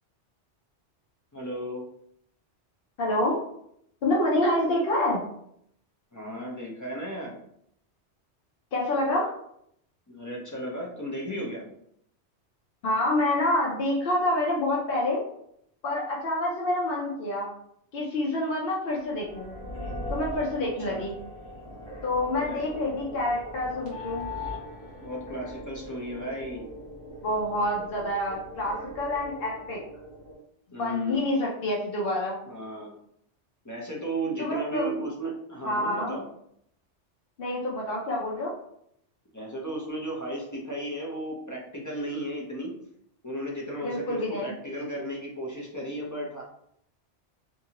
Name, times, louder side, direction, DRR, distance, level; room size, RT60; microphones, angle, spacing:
voice 1, 1.3-1.8 6.1-7.3 10.1-11.6 20.8-21.0 22.4-22.6 25.0-26.6 30.7-31.2 32.5-32.9 33.6-36.2 39.3-42.7 43.2-46.4, right 1 dB, 25° left, -3 dB, 0.4 m, -35 dB
voice 2, 3.0-3.4 4.0-5.2 8.7-9.3 12.8-15.2 15.8-17.5 17.9-19.5 20.1-21.2 22.0-24.3 27.2-29.8 30.8-32.4 34.4-35.0 35.6-36.2 37.4-38.5 43.8-44.5, left 1 dB, 60° left, -3 dB, 0.8 m, -27 dB
sound 1, 19.0-30.3, left 1 dB, 25° right, 1.0 m, -40 dB
2.6 x 2.6 x 2.8 m, 0.71 s
omnidirectional pair, 1.2 m